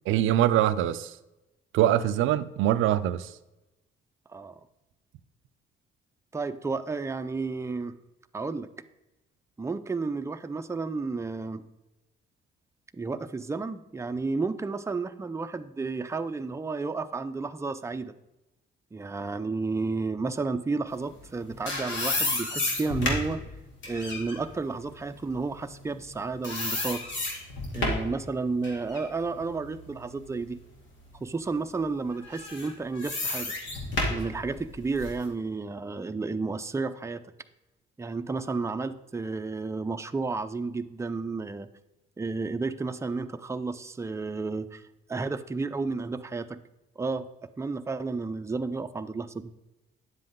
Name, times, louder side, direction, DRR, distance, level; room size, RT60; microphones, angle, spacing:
voice 1, 0.1-1.2 1.7-3.3, right 12 dB, 85° right, 0.5 m, -23 dB
voice 2, 6.3-8.0 8.3-8.7 9.6-11.7 12.9-18.1 18.9-23.4 23.9-27.0 27.7-30.6 31.2-33.5 34.1-37.2 38.0-41.7 42.2-44.8 45.1-46.6 47.0-47.3 47.6-49.5, right 3 dB, 15° right, 0.5 m, -32 dB
sound 1, 21.2-26.1 26.4-28.2 28.6-30.6 31.1-31.2 32.2-35.2, left 2 dB, 70° left, 2.5 m, -32 dB
9.7 x 7.6 x 3.7 m
cardioid pair, 90°, 20 cm